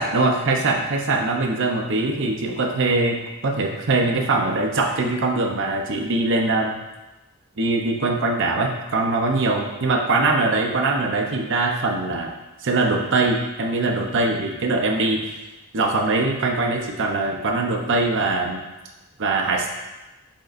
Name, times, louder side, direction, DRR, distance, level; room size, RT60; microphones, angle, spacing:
voice 1, 0.0-3.2 3.4-6.7 7.6-12.3 12.6-15.2 15.7-18.6 19.2-19.7, right 2 dB, 60° right, 2 dB, 0.7 m, -22 dB
7.2 x 5.1 x 2.5 m, 1.1 s
head